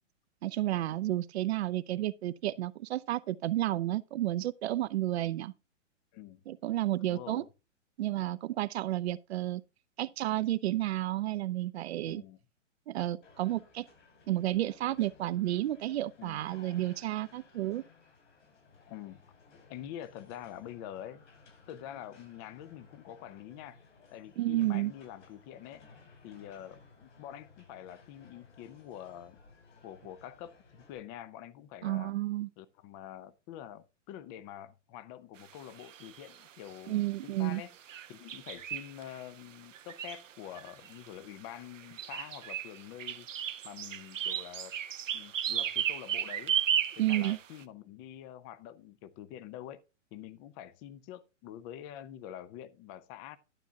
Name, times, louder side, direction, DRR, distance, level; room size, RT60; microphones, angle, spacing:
voice 1, 0.4-5.5 6.5-7.4 8.0-9.6 10.0-12.2 12.9-13.9 14.3-17.8 24.4-24.9 31.8-32.5 36.9-37.6 47.0-47.4, right 15 dB, 60° right, 0.7 m, -31 dB
voice 2, 7.0-7.5 12.0-12.4 16.2-16.5 18.9-19.2 19.7-21.3 21.7-23.8 24.1-25.8 26.2-29.4 29.8-32.2 32.6-37.8 38.1-43.3 43.6-44.8 45.1-46.6 47.0-49.8 50.1-53.4, left 11 dB, 20° left, 0.4 m, -46 dB
sound 1, 13.2-31.0, left 4 dB, 75° left, 6.3 m, -59 dB
sound 2, 35.8-36.3 37.5-37.6 37.9-39.3 39.7-41.1 41.7-47.6, right 9 dB, 85° right, 0.9 m, -34 dB
12.0 x 7.1 x 2.8 m
hypercardioid pair, 135°, 37 cm